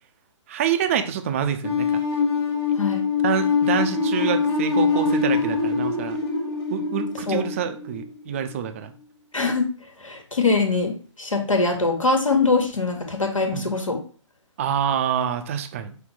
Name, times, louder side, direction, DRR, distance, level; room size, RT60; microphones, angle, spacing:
voice 1, 0.5-2.0 3.2-6.2 6.7-8.9 13.5-13.7 14.6-16.0, right 8 dB, 25° right, 8 dB, 0.4 m, -26 dB
sound 1, 1.6-8.5, left 4 dB, 25° left, 1.2 m, -24 dB
voice 2, 9.3-9.7 10.0-14.0, left 3 dB, 80° left, 4 dB, 1.2 m, -23 dB
5.7 x 2.1 x 3.9 m, 0.40 s
figure-of-eight pair, 135°, 16 cm